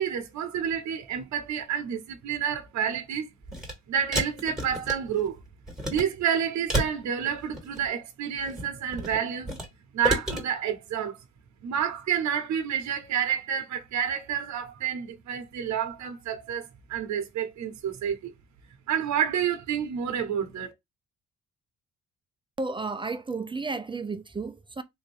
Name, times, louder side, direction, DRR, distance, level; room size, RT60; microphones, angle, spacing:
voice 1, 0.0-3.3 3.9-5.4 5.8-9.5 9.9-11.2 11.6-18.3 18.9-20.7, right 8 dB, 70° right, 0.8 m, -29 dB
sound 1, 3.4-3.7 4.1-5.3 5.7-6.0 6.7-7.9 8.4-9.7 10.0-10.4, equal, ahead, 1.5 m, -30 dB
voice 2, 22.6-24.8, right 3 dB, 15° right, 0.4 m, -32 dB
3.6 x 2.6 x 3.3 m
cardioid pair, 90°, 30 cm